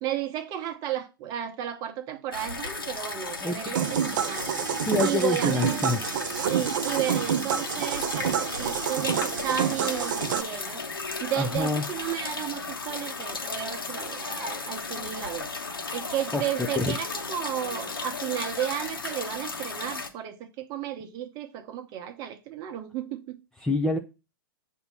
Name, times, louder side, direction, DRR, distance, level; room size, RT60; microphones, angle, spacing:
voice 1, 0.0-4.5 5.0-6.0 6.5-10.8 11.2-15.5 15.9-23.4, right 11 dB, 35° right, 0.9 m, -33 dB
sound 1, 2.3-20.1, left 4 dB, 80° left, 1.2 m, -35 dB
voice 2, 3.4-3.7 4.8-6.0 11.4-11.9 16.3-16.4 16.8-17.0 23.6-24.0, left 2 dB, 5° left, 0.4 m, -26 dB
sound 2, 3.7-10.4, right 8 dB, 60° right, 0.5 m, -28 dB
7.9 x 2.8 x 5.4 m
figure-of-eight pair, 110°, 12 cm